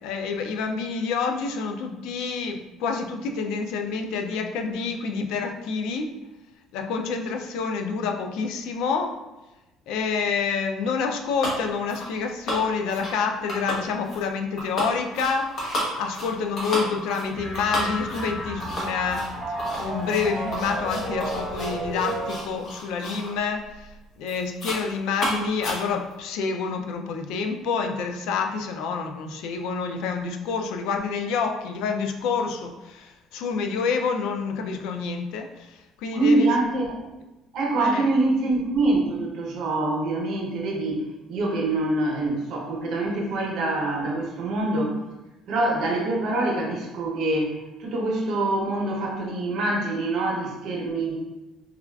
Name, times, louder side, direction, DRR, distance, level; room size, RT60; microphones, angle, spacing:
voice 1, 0.0-6.1 6.7-9.2 9.9-23.9 24.2-36.5 37.8-38.1, left 5 dB, 80° left, 5 dB, 0.3 m, -28 dB
sound 1, 11.4-11.6 11.9-12.1 12.5-13.2 13.5-14.2 14.6-23.3 23.7-24.0 24.3-24.9 25.1-26.1, equal, 40° left, 0.7 m, -32 dB
sound 2, 17.3-22.6, right 1 dB, 10° left, 1.0 m, -32 dB
voice 2, 36.1-36.9 37.5-41.0 41.3-44.9 45.5-47.5 47.8-51.2, right 2 dB, 55° right, -1 dB, 0.7 m, -25 dB
3.3 x 2.3 x 2.2 m, 1.0 s
cardioid pair, 160°, 0 cm